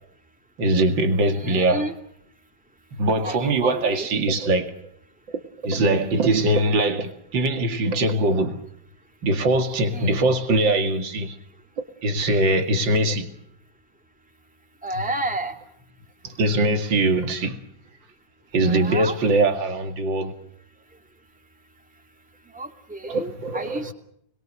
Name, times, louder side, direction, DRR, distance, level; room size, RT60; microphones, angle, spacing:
voice 1, 0.6-1.9 3.0-4.7 5.3-8.6 9.2-11.4 12.0-13.3 16.2-17.6 18.5-20.3 23.1-23.9, right 2 dB, 75° right, 2.9 m, -22 dB
voice 2, 1.2-1.9 3.2-4.1 9.9-10.3 14.8-15.6 18.6-19.2 22.5-23.9, right 1 dB, 5° right, 2.4 m, -31 dB
30.0 x 22.0 x 6.4 m
omnidirectional pair, 2.0 m